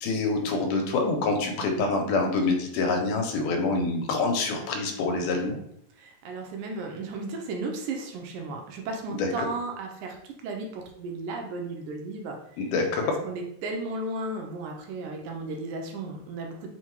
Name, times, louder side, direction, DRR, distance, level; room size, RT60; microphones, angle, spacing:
voice 1, 0.0-5.6 9.2-9.5 12.6-13.2, left 3 dB, 80° left, 3 dB, 2.2 m, -26 dB
voice 2, 6.0-12.4 13.0-16.7, right 3 dB, 80° right, 2 dB, 2.0 m, -35 dB
5.5 x 2.2 x 3.0 m, 0.71 s
omnidirectional pair, 3.7 m